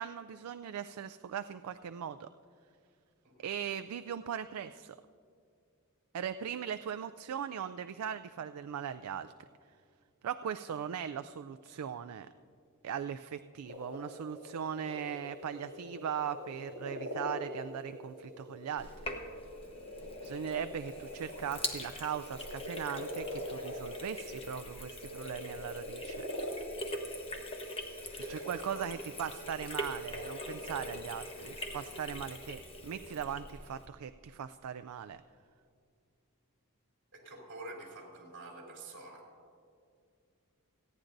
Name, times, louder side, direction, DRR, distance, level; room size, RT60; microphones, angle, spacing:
voice 1, 0.0-2.3 3.4-5.0 6.1-9.3 10.2-12.3 12.8-19.1 20.2-26.3 28.1-35.2, right 8 dB, 75° right, 11 dB, 0.3 m, -39 dB
sound 1, 13.6-21.5 21.9-24.5 25.0-28.6 29.0-29.6 30.1-31.0, left 1 dB, 80° left, 2.4 m, -43 dB
Sink (filling or washing), 18.8-33.9, left 1 dB, 25° left, 1.2 m, -43 dB
voice 2, 28.2-29.0 29.4-29.6 37.1-39.2, right 2 dB, 60° right, -2 dB, 3.3 m, -48 dB
29.0 x 10.0 x 2.6 m, 2.3 s
head